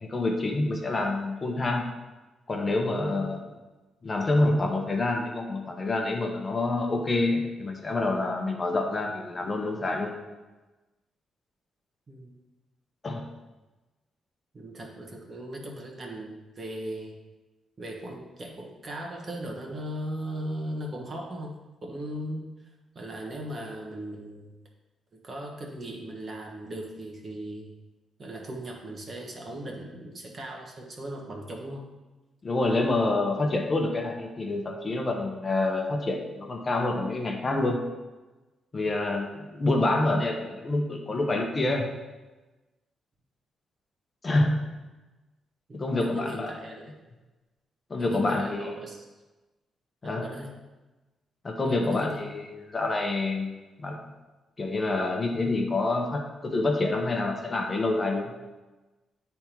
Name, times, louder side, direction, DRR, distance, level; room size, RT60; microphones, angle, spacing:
voice 1, 0.0-1.9 2.5-3.4 4.0-10.1 13.0-13.3 32.4-37.8 38.7-41.9 44.2-44.7 45.7-46.6 47.9-48.8 50.0-50.3 51.4-54.1 54.6-58.3, left 2 dB, 30° left, 2 dB, 0.9 m, -27 dB
voice 2, 14.5-17.1 17.8-22.5 22.9-24.5 25.2-27.7 28.2-31.9 45.7-46.9 48.0-49.0 50.0-50.5 51.7-52.2, right 1 dB, 40° right, 0 dB, 1.3 m, -38 dB
8.5 x 3.5 x 4.5 m, 1.2 s
cardioid pair, 110°, 0 cm